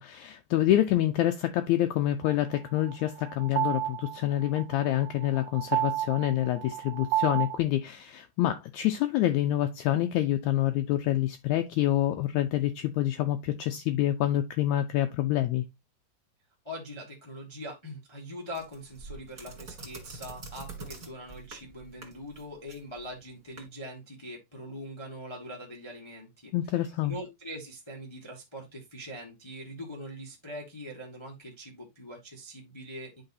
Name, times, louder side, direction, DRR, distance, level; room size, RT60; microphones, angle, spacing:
voice 1, 0.0-15.6 26.5-27.1, left 13 dB, 80° left, 1.7 m, -27 dB
sound 1, 2.3-7.6, right 14 dB, 80° right, 2.0 m, -31 dB
voice 2, 16.6-26.5 27.0-33.2, equal, 40° left, 0.4 m, -42 dB
sound 2, 18.5-23.7, right 3 dB, 30° right, 2.3 m, -45 dB
11.5 x 4.0 x 2.6 m
omnidirectional pair, 3.8 m